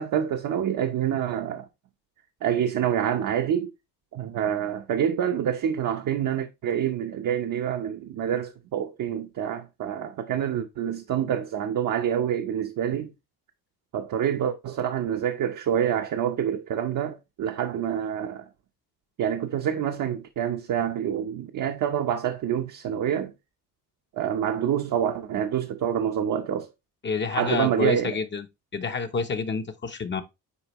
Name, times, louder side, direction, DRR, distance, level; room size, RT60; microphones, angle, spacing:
voice 1, 0.0-1.7 2.4-3.7 4.1-13.1 13.9-18.5 19.2-23.3 24.1-26.7 27.3-28.2, right 9 dB, 55° right, 0.8 m, -27 dB
voice 2, 27.0-28.5 28.7-30.2, left 5 dB, 30° left, 0.7 m, -28 dB
8.3 x 4.9 x 3.0 m
cardioid pair, 160°, 37 cm